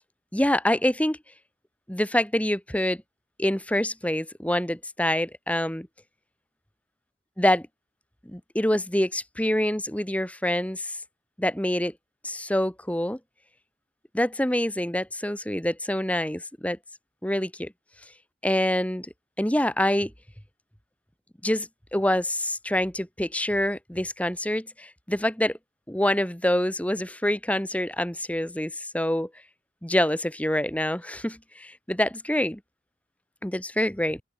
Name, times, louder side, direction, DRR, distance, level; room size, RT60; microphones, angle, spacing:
voice 1, 0.3-1.2 1.9-3.0 3.4-5.9 7.4-7.7 8.3-11.0 11.4-11.9 12.2-13.2 14.1-16.8 17.2-17.7 18.4-19.1 19.4-20.1 21.4-25.6 25.9-29.3 29.8-32.6 33.4-34.2, left 1 dB, 10° left, 1.8 m, -26 dB
head